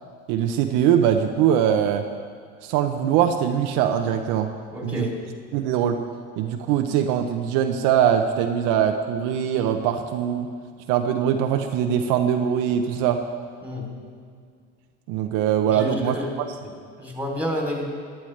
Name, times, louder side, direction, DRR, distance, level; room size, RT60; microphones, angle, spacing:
voice 1, 0.3-2.0 2.6-4.5 4.8-5.0 5.5-6.0 6.4-10.5 10.9-13.2 15.1-16.2, right 9 dB, 70° right, 5 dB, 0.8 m, -22 dB
voice 2, 4.7-5.1 13.6-13.9 15.7-16.3 16.6-17.8, left 1 dB, 5° right, -1 dB, 3.0 m, -30 dB
15.0 x 11.0 x 3.3 m, 2.1 s
supercardioid pair, 105°, 33 cm